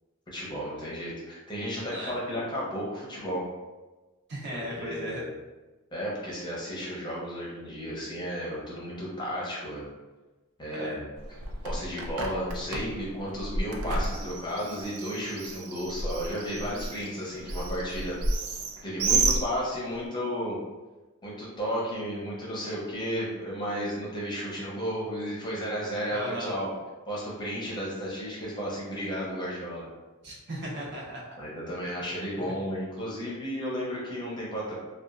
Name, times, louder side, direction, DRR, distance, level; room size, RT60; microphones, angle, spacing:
voice 1, 0.3-3.5 4.5-5.3 5.9-9.9 10.6-11.1 11.6-18.2 18.8-20.6 21.2-26.7 27.1-29.9 31.4-34.8, equal, 20° left, -5 dB, 0.7 m, -33 dB
voice 2, 4.3-5.2 10.7-10.9 26.1-26.5 30.2-31.3, equal, 50° right, -5 dB, 0.7 m, -36 dB
Bird, 11.2-20.1, right 3 dB, 80° right, 0.4 m, -32 dB
2.9 x 2.3 x 2.4 m, 1.2 s
head